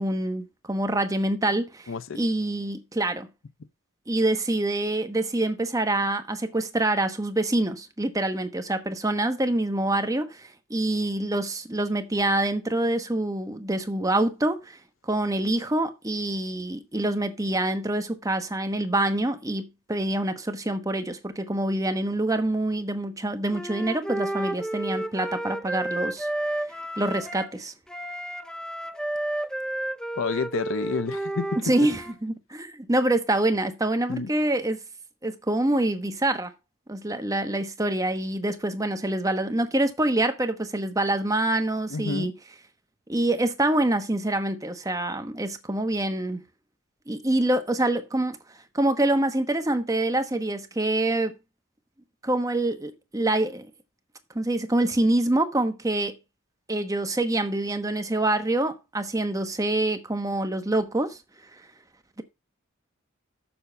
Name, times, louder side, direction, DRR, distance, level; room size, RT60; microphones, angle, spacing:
voice 1, 0.0-3.3 4.1-26.3 27.0-27.7 31.6-34.8 35.2-36.5 36.9-42.3 43.1-46.4 47.1-51.3 52.2-53.7 54.3-56.1 56.7-61.2 61.5-61.6, right 1 dB, 15° right, 1.0 m, -26 dB
voice 2, 1.9-2.2 30.2-31.5 34.1-34.3 41.9-42.3, left 4 dB, 80° left, 0.6 m, -29 dB
Wind instrument woodwind instrument, 23.5-27.5 27.9-32.1, right 1 dB, 5° left, 0.5 m, -31 dB
7.1 x 5.6 x 6.7 m
head